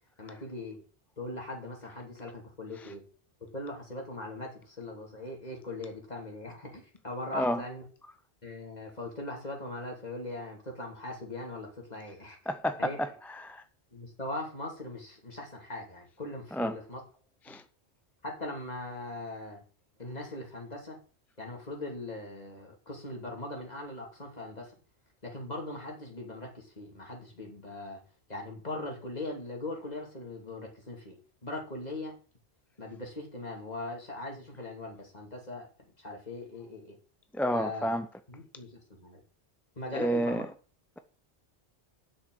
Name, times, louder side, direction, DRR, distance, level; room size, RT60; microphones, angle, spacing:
voice 1, 0.2-0.8 1.2-3.0 3.4-7.8 8.4-12.4 12.8-13.1 13.9-17.0 17.5-17.6 18.2-19.6 20.0-21.0 21.4-24.7 25.2-28.0 28.3-32.2 32.8-35.7 36.0-37.0 37.5-37.9 38.3-39.2 39.7-40.4, left 2 dB, 35° left, 3.1 m, -40 dB
voice 2, 12.5-13.1 13.4-13.6 16.5-16.8 17.5-17.6 37.3-38.1 39.9-40.5, equal, ahead, 0.4 m, -29 dB
7.6 x 6.5 x 7.9 m
omnidirectional pair, 1.2 m